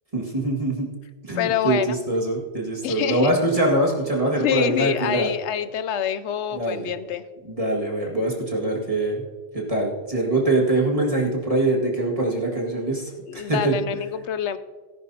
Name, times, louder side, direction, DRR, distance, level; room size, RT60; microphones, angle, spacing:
voice 1, 0.1-0.9 1.2-5.3 6.5-6.9 7.4-9.3 9.5-13.8, right 2 dB, 30° right, -2 dB, 2.1 m, -23 dB
voice 2, 1.3-2.0 2.8-3.3 4.4-7.2 13.3-14.6, left 9 dB, 85° left, 13 dB, 0.9 m, -26 dB
17.5 x 10.5 x 2.8 m, 1.4 s
omnidirectional pair, 1.2 m